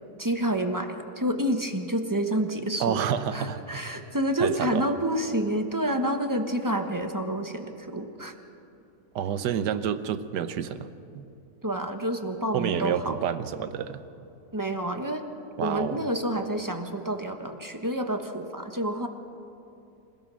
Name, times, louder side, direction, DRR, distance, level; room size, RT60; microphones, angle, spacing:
voice 1, 0.2-8.3 11.6-13.3 14.5-15.2 15.6-19.1, right 1 dB, 15° right, 5 dB, 1.0 m, -29 dB
voice 2, 2.8-3.9 4.4-4.8 9.1-10.9 11.1-11.2 12.5-14.0 15.6-16.0, right 8 dB, 85° right, 12 dB, 1.5 m, -29 dB
27.0 x 16.5 x 6.3 m, 2.8 s
omnidirectional pair, 1.8 m